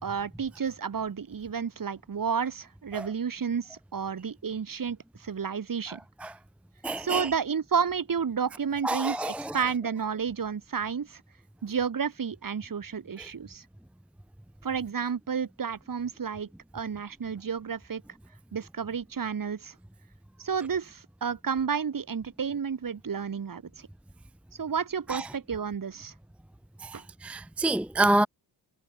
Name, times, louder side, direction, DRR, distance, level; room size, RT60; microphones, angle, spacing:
voice 1, 0.0-6.0 7.0-11.2 11.6-13.6 14.6-18.0 18.5-19.7 20.4-23.9 24.6-26.1 26.9-27.0, right 6 dB, 45° right, 2.9 m, -31 dB
voice 2, 6.8-7.3 8.8-9.6 25.1-25.3 26.8-28.3, right 2 dB, 5° right, 0.7 m, -28 dB
cardioid pair, 80°, 48 cm